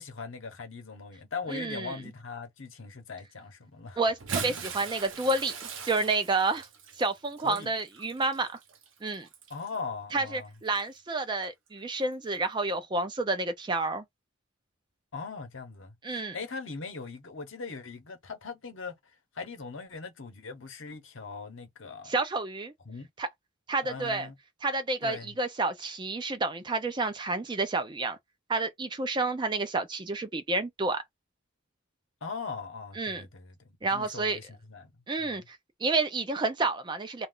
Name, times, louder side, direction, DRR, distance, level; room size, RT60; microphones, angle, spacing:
voice 1, 0.0-4.0 4.4-4.5 7.4-7.7 9.5-10.5 15.1-18.9 19.3-22.1 22.9-23.1 23.8-24.3 25.0-25.3 32.2-34.9 35.2-35.4, left 4 dB, 65° left, 0.9 m, -40 dB
voice 2, 1.5-1.9 4.0-5.5 5.9-6.7 7.0-8.5 9.0-9.3 10.1-14.0 16.0-16.4 22.1-22.7 23.2-23.3 23.7-24.3 24.6-28.2 28.5-31.0 33.0-33.2 33.8-34.4 35.1-37.3, right 3 dB, 20° right, 0.4 m, -30 dB
Bathtub (filling or washing) / Splash splatter, 4.1-9.8 10.7-10.8 12.3-12.4, right 5 dB, 65° right, 0.8 m, -40 dB
2.4 x 2.3 x 3.5 m
head